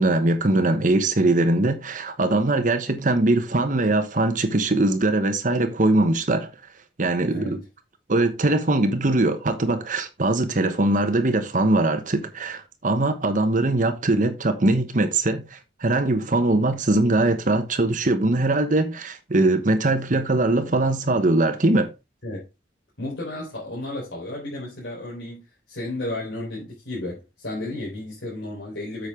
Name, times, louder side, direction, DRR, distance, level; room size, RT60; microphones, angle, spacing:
voice 1, 0.0-6.5 7.0-7.6 8.1-21.9, right 2 dB, 45° right, 1.0 m, -21 dB
voice 2, 23.0-29.1, left 1 dB, 75° left, 4.0 m, -33 dB
8.4 x 6.3 x 3.7 m
head